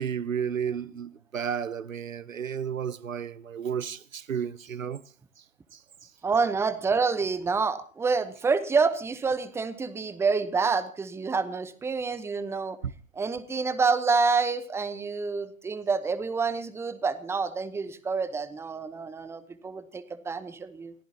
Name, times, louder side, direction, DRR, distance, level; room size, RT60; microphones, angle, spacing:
voice 1, 0.0-5.0 5.4-5.5 5.7-5.8 12.8-12.9, right 8 dB, 80° right, 0.8 m, -32 dB
voice 2, 6.2-12.8 13.2-20.9, right 4 dB, 5° right, 0.8 m, -27 dB
28.5 x 15.5 x 2.8 m
figure-of-eight pair, 105°, 39 cm